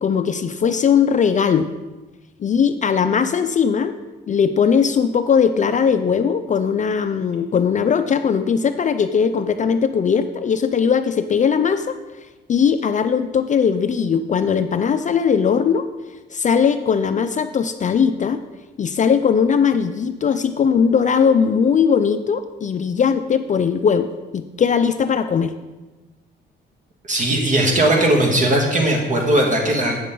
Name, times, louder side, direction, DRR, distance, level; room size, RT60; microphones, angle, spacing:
voice 1, 0.0-1.7 2.4-3.9 4.3-12.0 12.5-15.8 16.3-18.4 18.8-25.5, left 6 dB, 40° left, 10 dB, 0.4 m, -19 dB
voice 2, 27.1-30.0, right 1 dB, 40° right, 1 dB, 1.8 m, -18 dB
8.5 x 6.6 x 3.8 m, 1.1 s
cardioid pair, 90°, 20 cm